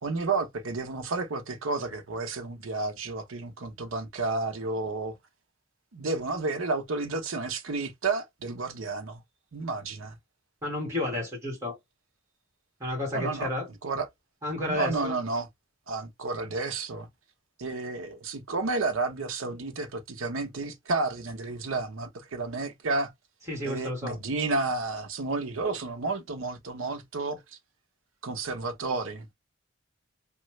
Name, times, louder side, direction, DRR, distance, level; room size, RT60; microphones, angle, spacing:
voice 1, 0.0-5.2 5.9-9.2 9.5-10.2 13.1-13.5 13.8-14.1 14.7-15.5 15.9-17.1 17.6-23.1 23.6-27.4 28.2-29.3, right 3 dB, 90° right, 0.7 m, -31 dB
voice 2, 10.6-11.8 12.8-13.7 14.4-15.1 23.5-24.2, left 1 dB, 15° right, 1.4 m, -31 dB
3.1 x 2.3 x 3.0 m
head